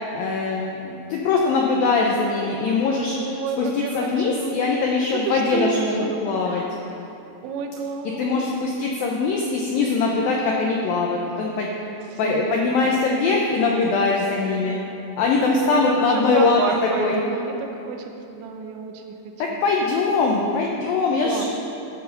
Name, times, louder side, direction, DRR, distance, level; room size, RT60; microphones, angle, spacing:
voice 1, 0.1-3.2 3.6-5.9 6.2-6.6 8.2-11.7 12.2-14.8 15.2-17.2 19.4-21.4, left 4 dB, 85° left, -1 dB, 2.0 m, -22 dB
voice 2, 3.2-4.8 5.1-6.8 7.4-8.4 12.1-13.1 15.4-19.6 21.2-21.5, right 6 dB, 80° right, 4 dB, 3.1 m, -31 dB
14.0 x 8.1 x 5.7 m, 2.9 s
omnidirectional pair, 5.3 m